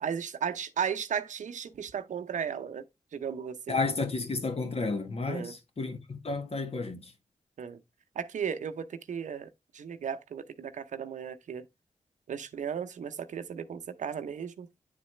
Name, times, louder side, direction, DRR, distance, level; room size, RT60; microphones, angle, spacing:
voice 1, 0.0-2.8 3.1-3.8 5.3-5.5 7.6-7.8 8.1-11.6 12.3-14.7, right 7 dB, 80° right, 0.7 m, -35 dB
voice 2, 3.7-7.1, left 3 dB, 55° left, 1.5 m, -32 dB
9.6 x 4.0 x 3.2 m
cardioid pair, 55°, 12 cm